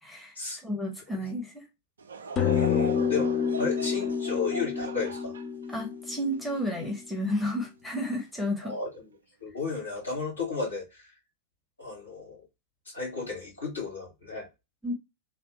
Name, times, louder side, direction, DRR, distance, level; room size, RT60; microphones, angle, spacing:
voice 1, 0.0-0.3 0.6-1.7 5.7-8.8 14.8-14.9, left 1 dB, ahead, 1.0 m, -31 dB
Laughter / Crowd, 2.0-7.5 8.0-8.1 8.9-9.2, right 5 dB, 70° right, 0.4 m, -42 dB
voice 2, 2.4-5.3 8.6-8.9 9.4-11.1 11.8-12.5 12.9-14.5, left 4 dB, 80° left, 2.2 m, -34 dB
sound 1, 2.4-7.0, left 7 dB, 30° left, 0.7 m, -29 dB
3.3 x 2.5 x 2.8 m
figure-of-eight pair, 90°, 0 cm